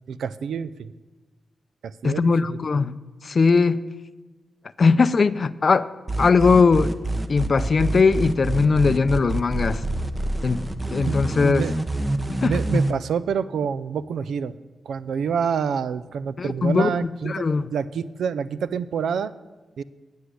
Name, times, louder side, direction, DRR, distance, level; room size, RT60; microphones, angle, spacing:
voice 1, 0.1-0.9 1.8-2.6 11.1-11.2 11.5-11.7 12.5-14.5 14.9-17.4 17.7-19.3 19.8-19.9, right 6 dB, 80° right, 15 dB, 0.4 m, -27 dB
voice 2, 2.0-2.9 3.2-3.8 4.8-5.9 6.2-6.9 7.3-9.8 10.4-10.6 10.9-11.6 12.4-12.5 16.4-17.7, left 4 dB, 55° left, 15 dB, 0.4 m, -19 dB
sound 1, 6.1-12.9, right 2 dB, 25° right, 0.9 m, -26 dB
9.7 x 6.3 x 8.3 m, 1.2 s
cardioid pair, 50°, 0 cm